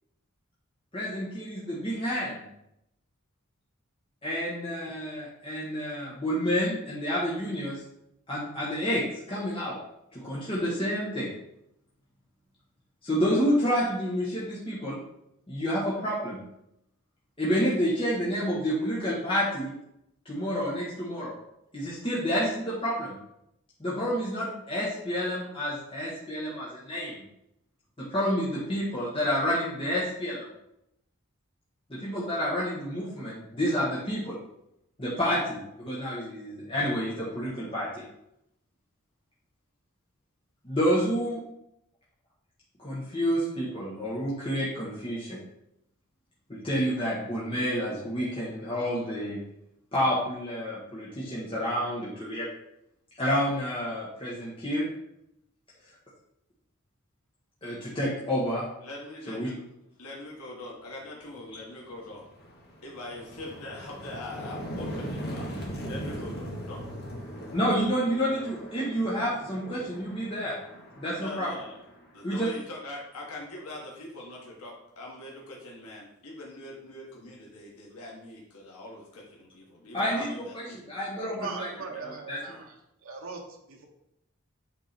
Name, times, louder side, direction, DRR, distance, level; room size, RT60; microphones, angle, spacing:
voice 1, 0.9-2.5 4.2-7.8 8.3-9.8 10.1-11.3 13.0-15.0 15.5-16.4 17.4-19.7 20.2-21.4 21.7-23.2 23.8-27.2 28.0-30.4 31.9-34.4 35.0-38.0 40.6-41.4 42.8-45.4 46.5-49.4 49.9-52.5 53.2-54.9 57.6-58.7 59.3-59.5 67.5-70.6 71.0-71.5 72.2-72.5 79.9-81.7 82.0-82.6, equal, 25° left, -7 dB, 1.4 m, -29 dB
voice 2, 58.8-59.6 60.0-62.3 62.8-66.8 71.2-71.8 72.1-80.8, left 2 dB, 85° left, -3 dB, 1.6 m, -42 dB
sound 1, 61.3-61.5 61.9-72.7, equal, 45° left, 1.4 m, -40 dB
voice 3, 81.1-82.7 83.0-83.9, right 4 dB, 65° right, 1 dB, 1.0 m, -39 dB
8.2 x 3.7 x 4.4 m, 0.81 s
head